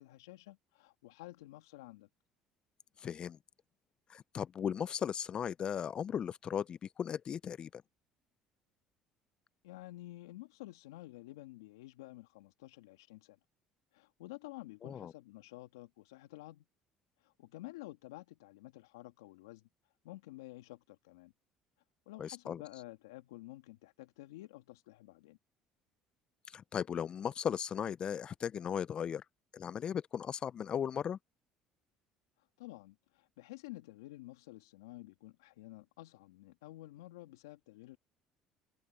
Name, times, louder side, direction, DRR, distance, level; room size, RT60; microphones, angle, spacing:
voice 1, 0.0-2.1 9.6-13.4 13.9-16.6 17.2-19.7 20.0-21.3 22.1-25.4 32.6-38.0, left 18 dB, 85° left, 2.4 m, -51 dB
voice 2, 3.0-3.4 4.1-7.8 14.8-15.1 22.2-22.6 26.5-29.2 29.5-31.2, left 8 dB, 45° left, 0.4 m, -37 dB
open air
hypercardioid pair, 70°, 2 cm